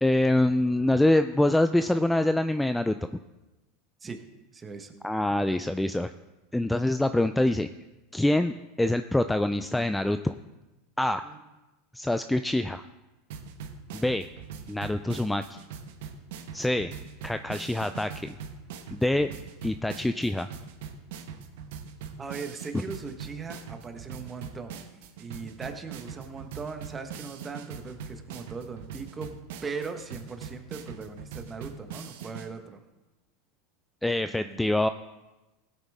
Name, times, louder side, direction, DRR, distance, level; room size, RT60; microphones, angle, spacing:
voice 1, 0.0-2.9 5.0-6.1 6.5-7.7 8.1-10.3 11.0-11.2 11.9-12.8 13.9-14.3 14.7-15.6 16.5-16.9 17.2-18.3 18.9-19.3 19.6-20.5 34.0-34.9, left 1 dB, 5° left, 10 dB, 0.4 m, -25 dB
voice 2, 4.5-4.9 11.2-11.5 22.2-24.9 25.2-29.3 29.6-32.8 34.2-34.6, right 5 dB, 20° right, 6 dB, 1.4 m, -39 dB
sound 1, 13.3-32.5, right 6 dB, 70° right, 1.2 m, -42 dB
16.0 x 8.9 x 3.6 m, 1.1 s
hypercardioid pair, 100°, 0 cm